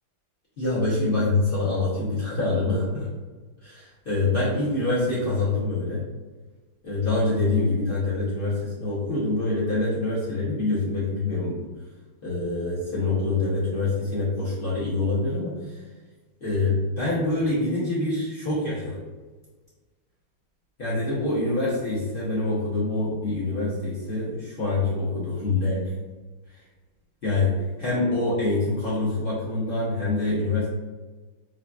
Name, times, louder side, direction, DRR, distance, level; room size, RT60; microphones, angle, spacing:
voice 1, 0.6-3.1 3.6-6.0 6.8-11.7 12.2-15.8 16.4-19.0 20.8-25.9 27.2-30.7, left 2 dB, 55° left, -10 dB, 0.6 m, -25 dB
3.9 x 2.4 x 2.3 m, 1.3 s
omnidirectional pair, 2.3 m